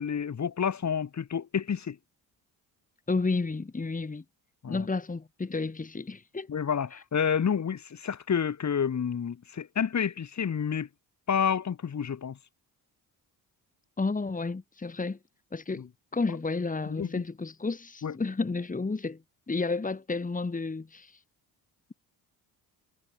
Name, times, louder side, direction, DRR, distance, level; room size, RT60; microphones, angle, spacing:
voice 1, 0.0-2.0 4.6-4.9 6.5-10.9 11.3-12.4 15.7-15.9 16.9-17.2 18.0-18.1, left 7 dB, 45° left, 4.5 m, -29 dB
voice 2, 3.1-4.2 4.7-6.5 14.0-15.2 15.5-15.9 16.1-19.2 19.5-21.2, left 3 dB, 20° left, 3.1 m, -31 dB
cardioid pair, 95°, 40 cm